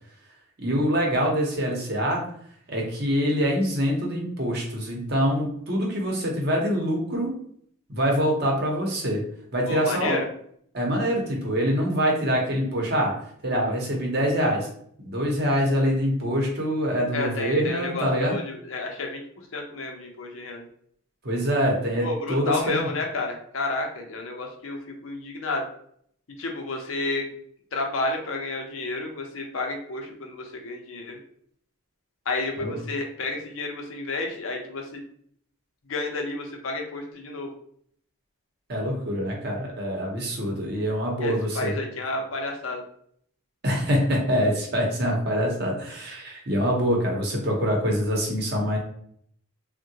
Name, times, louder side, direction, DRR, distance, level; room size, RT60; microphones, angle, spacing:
voice 1, 0.6-2.2 2.7-7.3 7.9-9.2 9.5-10.2 10.7-13.1 13.4-14.7 15.0-18.4 21.2-22.9 32.6-32.7 38.7-41.8 43.6-48.8, equal, 50° right, 0 dB, 0.8 m, -25 dB
voice 2, 9.6-10.3 17.1-20.7 22.0-25.7 26.4-27.4 27.7-31.2 32.3-35.0 35.9-37.5 41.2-42.8, left 2 dB, 70° left, 2 dB, 0.6 m, -31 dB
3.6 x 2.1 x 2.7 m, 0.64 s
head